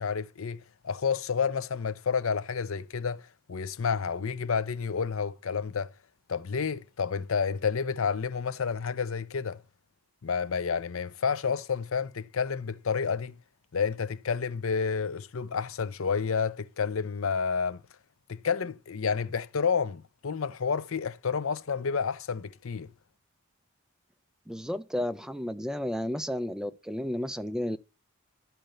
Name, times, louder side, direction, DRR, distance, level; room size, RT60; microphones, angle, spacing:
voice 1, 0.0-5.9 6.3-9.6 10.2-13.4 13.7-17.8 18.3-22.9, left 6 dB, 70° left, 0.6 m, -30 dB
voice 2, 24.5-27.8, equal, 5° right, 0.5 m, -32 dB
12.0 x 4.5 x 6.5 m
head